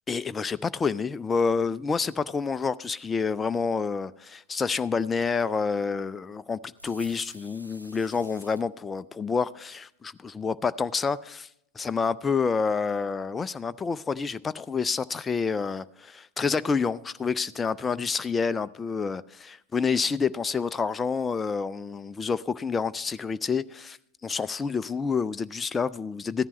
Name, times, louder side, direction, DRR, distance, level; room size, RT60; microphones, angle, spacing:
voice 1, 0.1-9.9 10.3-11.5 11.8-24.0 24.2-26.5, left 5 dB, 15° left, 0.3 m, -28 dB
sound 1, 6.8-8.6, equal, 90° right, 0.8 m, -48 dB
14.5 x 10.5 x 3.0 m
figure-of-eight pair, 90°, 0 cm